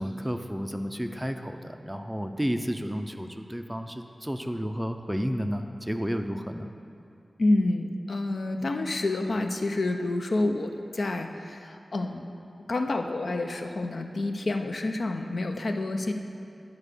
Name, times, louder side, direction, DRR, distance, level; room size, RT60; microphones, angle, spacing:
voice 1, 0.0-6.7, equal, 5° right, 6 dB, 0.4 m, -31 dB
voice 2, 7.4-12.3 12.7-16.1, left 2 dB, 65° left, 4 dB, 0.6 m, -28 dB
9.6 x 4.8 x 6.6 m, 2.5 s
wide cardioid pair, 80°, 0 cm